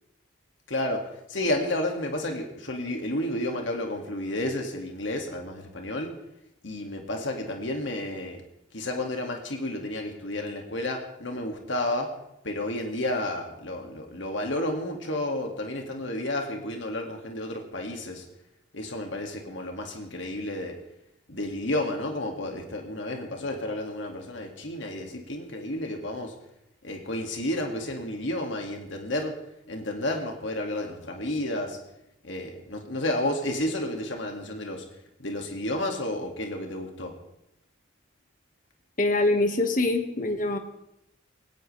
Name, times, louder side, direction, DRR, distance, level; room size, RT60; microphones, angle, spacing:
voice 1, 0.7-6.1 6.6-8.4 8.7-12.1 12.4-18.3 18.7-20.7 21.3-26.3 26.8-29.4 29.7-31.8 32.2-34.9 35.2-37.1, left 1 dB, 75° left, 2 dB, 2.2 m, -31 dB
voice 2, 39.0-40.6, left 2 dB, 40° left, 5 dB, 1.7 m, -24 dB
19.5 x 18.0 x 3.4 m, 0.82 s
head